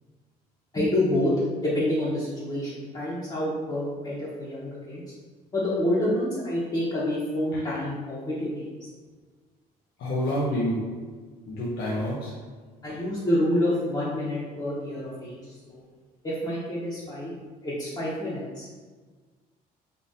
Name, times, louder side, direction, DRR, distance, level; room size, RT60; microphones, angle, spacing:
voice 1, 0.7-1.3 1.6-5.0 5.5-8.9 12.8-15.8 16.2-17.3 17.6-18.7, left 1 dB, 25° left, -9 dB, 0.9 m, -28 dB
voice 2, 10.0-12.4, equal, 75° left, -6 dB, 0.7 m, -29 dB
3.6 x 2.5 x 2.7 m, 1.4 s
cardioid pair, 110°, 17 cm